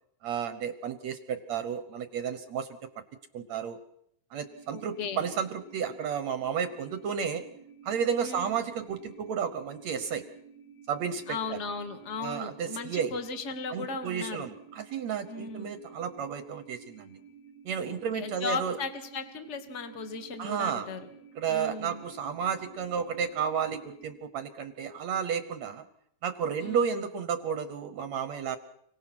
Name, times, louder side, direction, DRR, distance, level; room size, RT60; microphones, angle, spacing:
voice 1, 0.2-2.7 3.3-3.8 4.3-7.4 7.9-10.2 10.9-11.6 12.2-13.1 13.7-17.2 17.6-18.8 20.4-20.9 21.4-25.8 26.2-28.6, right 7 dB, 65° right, 10 dB, 1.8 m, -32 dB
sound 1, 4.4-24.2, right 6 dB, 50° left, 8.0 m, -53 dB
voice 2, 4.7-5.2 8.2-8.6 11.3-14.5 15.3-15.7 17.8-21.0 21.5-22.0 26.6-27.0, left 4 dB, 30° left, 7 dB, 1.4 m, -36 dB
30.0 x 18.5 x 6.1 m, 0.72 s
omnidirectional pair, 4.4 m